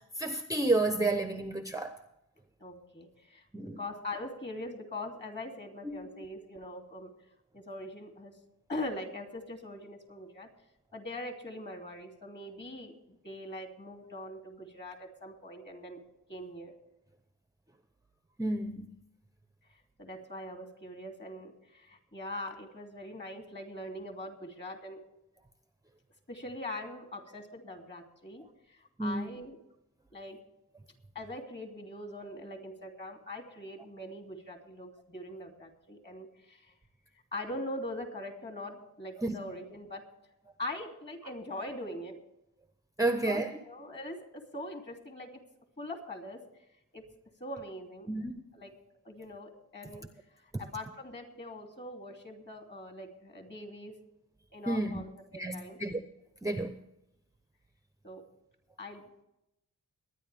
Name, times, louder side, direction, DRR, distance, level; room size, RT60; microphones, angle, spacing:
voice 1, 0.2-1.9 3.5-3.8 5.8-6.1 18.4-18.9 29.0-29.3 39.2-39.4 43.0-43.6 48.1-48.3 54.7-55.0 55.4-56.0 56.4-56.8, right 2 dB, 10° right, 0.8 m, -30 dB
voice 2, 2.6-7.1 7.5-8.3 8.7-10.5 10.9-16.0 16.3-16.7 20.0-25.0 26.3-29.6 30.1-30.4 31.1-36.7 37.3-40.0 40.6-42.2 43.1-45.3 45.8-46.4 46.9-47.0 47.4-48.1 48.5-48.7 49.0-50.1 50.6-53.9 54.5-55.8 58.0-58.2 58.8-59.0, left 1 dB, 30° left, 3.0 m, -42 dB
22.5 x 9.8 x 3.5 m
wide cardioid pair, 100°, 33 cm